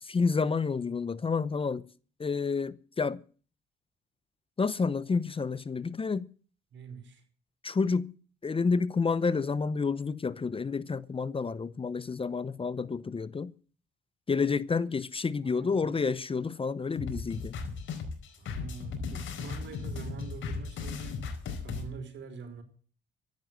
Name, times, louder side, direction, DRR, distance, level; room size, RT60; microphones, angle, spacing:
voice 1, 0.0-1.9 2.2-3.2 4.6-6.3 7.6-8.1 8.4-13.5 14.3-17.6, left 4 dB, 25° left, 0.8 m, -29 dB
voice 2, 6.7-7.2 15.4-15.9 18.4-21.2 21.6-22.6, right 5 dB, 70° right, 5.1 m, -45 dB
sound 1, 17.0-21.8, left 5 dB, 75° left, 4.7 m, -36 dB
15.0 x 10.5 x 7.7 m
cardioid pair, 90°, 20 cm